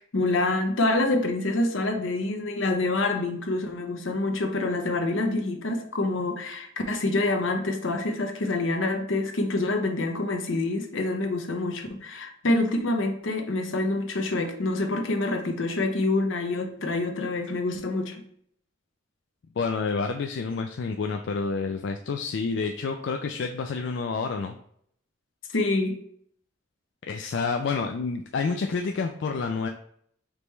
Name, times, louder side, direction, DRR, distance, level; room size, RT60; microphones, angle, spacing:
voice 1, 0.0-18.2 25.5-26.0, left 2 dB, 80° left, 5 dB, 0.7 m, -26 dB
voice 2, 19.6-24.6 27.0-29.7, left 4 dB, 65° left, 4 dB, 0.3 m, -29 dB
5.1 x 3.1 x 3.2 m, 0.66 s
head